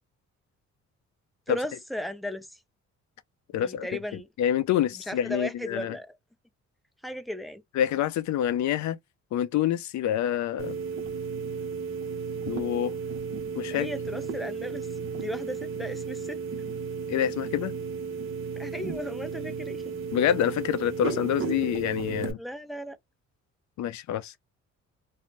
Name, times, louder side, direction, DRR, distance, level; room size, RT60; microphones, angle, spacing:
voice 1, 1.5-2.5 3.5-4.3 5.1-6.1 7.0-7.6 13.7-14.9 15.1-16.4 18.6-19.9 22.4-23.0, equal, ahead, 0.5 m, -35 dB
voice 2, 3.5-3.9 4.4-6.0 7.7-9.0 9.3-10.8 12.5-12.9 13.5-13.9 17.1-17.7 20.1-22.4 23.8-24.4, left 10 dB, 70° left, 0.5 m, -27 dB
sound 1, 10.6-22.3, right 5 dB, 45° right, 0.8 m, -34 dB
2.6 x 2.1 x 3.1 m
cardioid pair, 90°, 30 cm